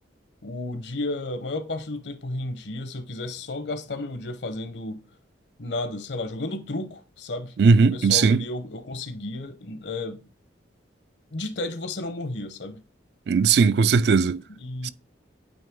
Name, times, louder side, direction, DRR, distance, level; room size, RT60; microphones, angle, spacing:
voice 1, 0.4-5.0 5.6-10.3 11.3-12.8 14.6-14.9, left 2 dB, 70° left, 0.9 m, -33 dB
voice 2, 7.6-8.4 13.3-14.4 14.8-14.9, right 5 dB, 60° right, 0.3 m, -18 dB
8.7 x 3.1 x 3.6 m
head